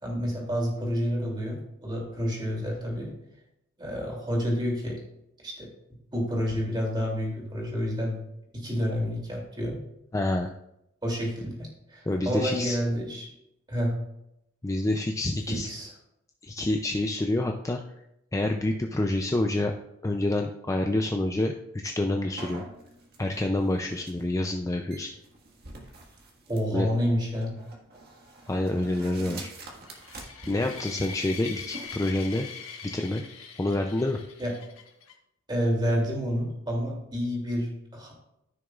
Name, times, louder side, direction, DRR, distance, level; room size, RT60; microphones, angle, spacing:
voice 1, 0.0-3.1 3.8-5.0 5.4-5.7 6.1-8.2 8.5-9.8 11.0-13.3 13.7-14.0 15.5-15.9 26.5-27.5 34.4-34.5 35.5-38.1, equal, 20° right, -2 dB, 2.8 m, -29 dB
voice 2, 10.1-10.5 12.1-12.8 14.6-15.7 16.4-17.8 18.3-19.7 20.0-22.6 23.2-25.1 26.7-26.9 28.5-29.5 30.5-32.5 32.9-33.2 33.6-34.2, left 1 dB, 15° left, 3 dB, 0.4 m, -27 dB
sound 1, 22.4-31.9, right 2 dB, 50° right, 1.7 m, -46 dB
sound 2, 29.8-35.1, left 6 dB, 70° left, 1.4 m, -42 dB
14.5 x 6.2 x 2.4 m, 0.80 s
head